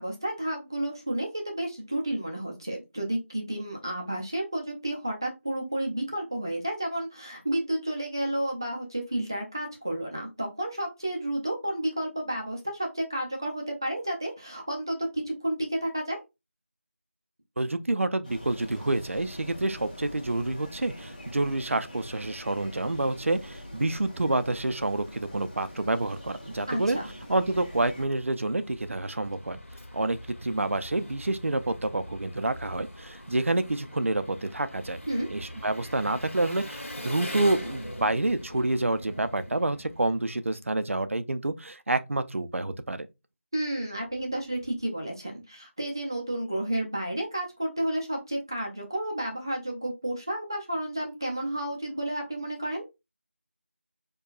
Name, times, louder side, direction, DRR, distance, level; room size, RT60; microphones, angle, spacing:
voice 1, 0.0-16.2 26.7-27.1 35.1-35.3 43.5-52.8, right 1 dB, 15° right, 0.4 m, -31 dB
voice 2, 17.6-27.0 27.3-29.6 29.9-35.0 35.3-43.1, right 2 dB, 70° right, 0.5 m, -28 dB
sound 1, 18.2-28.1, equal, 35° left, 1.2 m, -44 dB
Engine, 27.1-40.5, left 1 dB, 75° left, 1.4 m, -43 dB
4.6 x 2.3 x 2.3 m
figure-of-eight pair, 175°, 7 cm